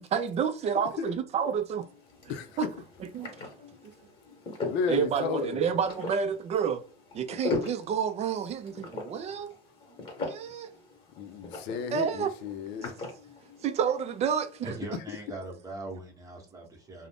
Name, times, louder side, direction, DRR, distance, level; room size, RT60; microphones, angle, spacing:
voice 1, 0.0-1.9 2.6-2.7 3.0-3.5 4.9-6.8 7.1-9.5 10.2-10.7 11.9-12.3 12.8-12.9 13.6-14.7, right 7 dB, 35° right, 0.4 m, -29 dB
sound 1, 1.8-14.7, left 3 dB, 30° left, 1.1 m, -40 dB
voice 2, 4.6-5.6 11.2-12.9, left 6 dB, 75° left, 0.5 m, -33 dB
voice 3, 14.6-17.1, right 2 dB, 20° right, 0.9 m, -40 dB
2.5 x 2.0 x 3.4 m
cardioid pair, 140°, 18 cm